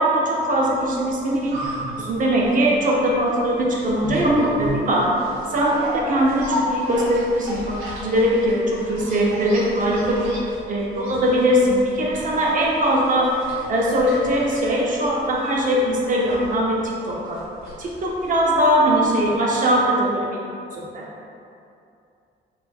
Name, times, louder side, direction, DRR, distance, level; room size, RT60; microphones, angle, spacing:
voice 1, 0.0-5.1 5.5-10.3 10.7-13.3 13.7-17.4 17.8-21.0, equal, 40° right, -3 dB, 0.6 m, -21 dB
sound 1, 0.9-18.9 19.2-19.3, equal, 85° right, 1.1 m, -32 dB
3.1 x 3.1 x 2.2 m, 2.6 s
cardioid pair, 115°, 20 cm